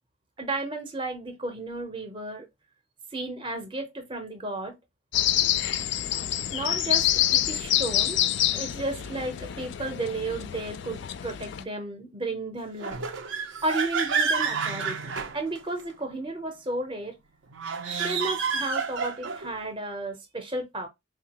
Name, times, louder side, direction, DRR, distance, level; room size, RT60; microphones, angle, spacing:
voice 1, 0.4-2.5 3.1-4.8 6.5-8.2 8.5-13.0 13.3-17.2 18.0-20.9, right 2 dB, 25° right, 0.7 m, -33 dB
sound 1, 5.1-11.6, left 12 dB, 65° left, 0.3 m, -27 dB
sound 2, 12.8-15.9 17.5-19.5, right 5 dB, 70° right, 0.6 m, -29 dB
3.6 x 2.4 x 2.8 m
head